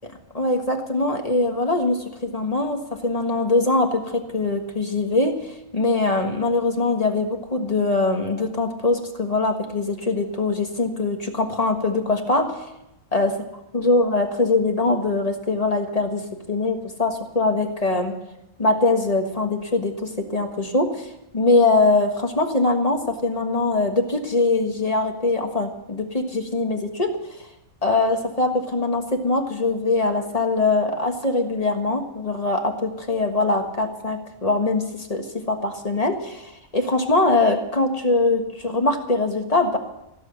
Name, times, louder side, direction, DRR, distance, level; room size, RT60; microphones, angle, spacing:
voice 1, 0.0-12.7 13.1-13.3 13.7-18.1 18.6-27.5 27.8-39.8, left 2 dB, 25° left, 4 dB, 1.6 m, -22 dB
16.0 x 7.6 x 9.9 m, 0.89 s
omnidirectional pair, 1.5 m